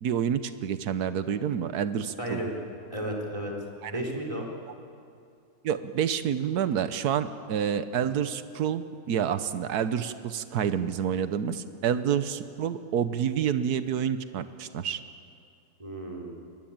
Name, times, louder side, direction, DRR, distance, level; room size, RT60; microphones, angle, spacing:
voice 1, 0.0-2.4 3.8-3.9 5.6-15.0, right 8 dB, 80° right, 11 dB, 1.5 m, -28 dB
voice 2, 2.2-2.5 2.9-3.5 3.9-4.5 15.8-16.3, right 1 dB, 20° right, 0 dB, 4.0 m, -33 dB
24.0 x 21.0 x 8.9 m, 2.4 s
omnidirectional pair, 1.6 m